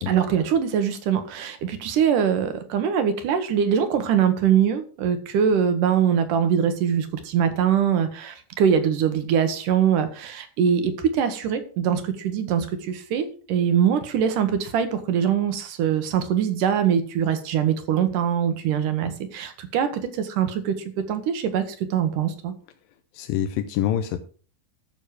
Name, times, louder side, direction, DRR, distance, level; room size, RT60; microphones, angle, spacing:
voice 1, 0.1-20.8 21.1-22.5, right 8 dB, 65° right, 9 dB, 2.4 m, -23 dB
voice 2, 23.1-24.2, left 10 dB, 75° left, 8 dB, 2.3 m, -25 dB
13.5 x 6.4 x 4.9 m, 0.40 s
omnidirectional pair, 4.5 m